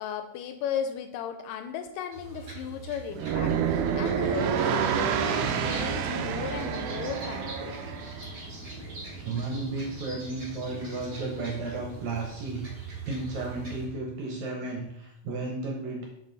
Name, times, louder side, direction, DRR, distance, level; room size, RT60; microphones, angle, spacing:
voice 1, 0.0-7.8, left 8 dB, 80° left, 7 dB, 2.0 m, -36 dB
sound 1, 2.1-13.9, right 4 dB, 55° right, 0.9 m, -43 dB
sound 2, 3.1-8.2, right 7 dB, 85° right, 1.7 m, -28 dB
sound 3, 4.0-13.0, left 1 dB, 10° left, 1.6 m, -46 dB
voice 2, 9.2-16.0, right 3 dB, 70° right, 1 dB, 1.8 m, -34 dB
6.2 x 5.3 x 3.9 m, 0.82 s
omnidirectional pair, 4.1 m